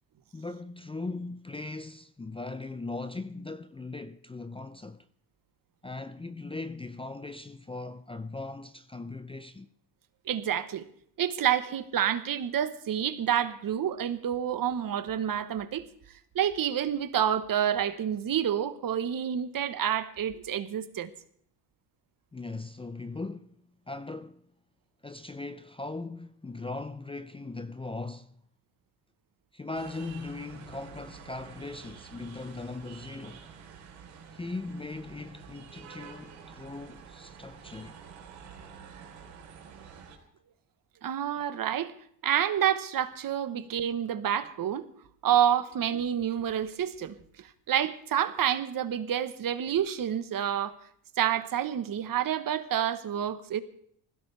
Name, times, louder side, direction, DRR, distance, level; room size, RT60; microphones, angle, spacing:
voice 1, 0.3-5.1 5.8-9.7 22.3-23.5 23.9-24.4 25.0-28.4 29.5-33.5 34.3-37.9 43.5-43.7, left 3 dB, 10° left, 0.6 m, -39 dB
voice 2, 10.3-10.8 11.2-15.9 16.3-21.1 41.0-41.9 42.2-44.9 45.2-50.7 51.2-53.6, right 9 dB, 50° right, 1.3 m, -28 dB
sound 1, 29.7-40.2, right 6 dB, 90° right, 3.9 m, -49 dB
20.0 x 16.0 x 3.4 m
supercardioid pair, 80°, 44 cm